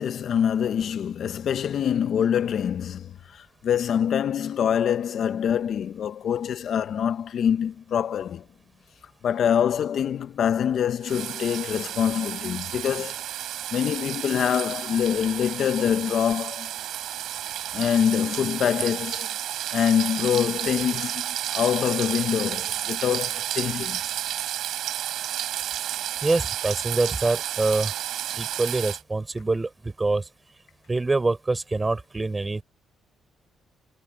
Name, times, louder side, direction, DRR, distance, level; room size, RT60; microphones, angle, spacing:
voice 1, 0.0-8.4 9.2-13.2 13.7-16.8 17.7-19.3 19.7-21.3 21.5-24.0, left 8 dB, 65° left, 1.2 m, -25 dB
sound 1, 11.0-29.0, right 12 dB, 75° right, 7.4 m, -31 dB
voice 2, 26.2-27.9 28.3-30.3 30.9-32.6, right 3 dB, 20° right, 7.0 m, -25 dB
cardioid pair, 90°, 0 cm